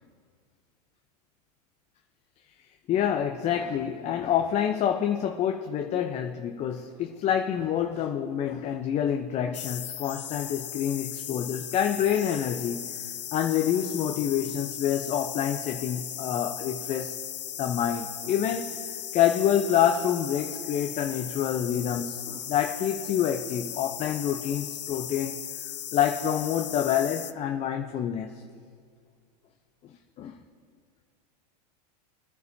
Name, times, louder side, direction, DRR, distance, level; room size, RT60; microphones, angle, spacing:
voice 1, 2.9-12.9 13.3-17.2 17.6-18.8 19.1-25.4 25.9-28.3 30.2-30.4, left 9 dB, 30° left, 4 dB, 0.7 m, -27 dB
sound 1, 9.5-27.3, left 10 dB, 90° left, 0.5 m, -37 dB
23.0 x 9.4 x 2.8 m, 2.1 s
hypercardioid pair, 105°, 21 cm